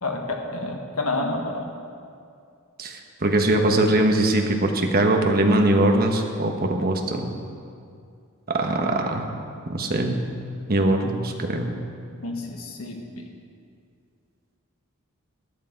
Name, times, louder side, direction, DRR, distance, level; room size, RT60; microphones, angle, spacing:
voice 1, 0.0-1.7 12.2-13.3, left 2 dB, 75° left, 2 dB, 1.6 m, -29 dB
voice 2, 2.8-7.3 8.5-9.2 9.7-10.2 10.7-11.7, right 1 dB, 45° right, 3 dB, 1.2 m, -21 dB
13.5 x 12.0 x 4.6 m, 2.4 s
head